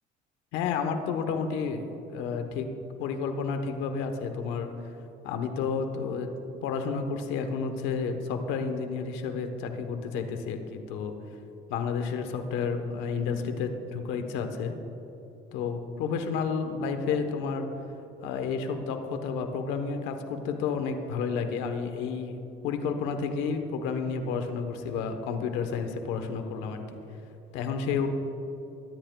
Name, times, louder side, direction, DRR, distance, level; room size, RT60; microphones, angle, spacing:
voice 1, 0.5-1.8 2.1-2.7 3.0-4.7 5.2-6.3 6.6-11.1 11.7-14.7 15.5-17.7 18.2-22.4 22.6-27.0 27.5-28.1, left 5 dB, 80° left, 6 dB, 1.0 m, -31 dB
22.5 x 10.0 x 2.3 m, 3.0 s
cardioid pair, 115°, 19 cm